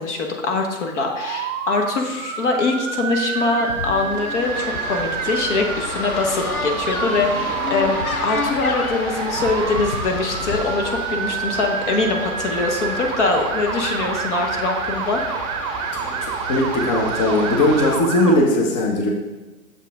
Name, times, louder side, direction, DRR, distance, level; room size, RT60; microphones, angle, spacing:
voice 1, 0.0-15.2, left 3 dB, 55° left, 2 dB, 1.2 m, -23 dB
Motor vehicle (road) / Siren, 1.0-18.4, right 7 dB, 30° right, 0.7 m, -29 dB
sound 1, 3.4-10.7, left 4 dB, 90° left, 0.9 m, -30 dB
sound 2, 4.4-18.0, right 1 dB, 10° left, 1.6 m, -32 dB
voice 2, 16.0-19.1, left 1 dB, 35° left, 1 dB, 1.1 m, -19 dB
6.8 x 5.5 x 3.6 m, 1.2 s
hypercardioid pair, 130°, 42 cm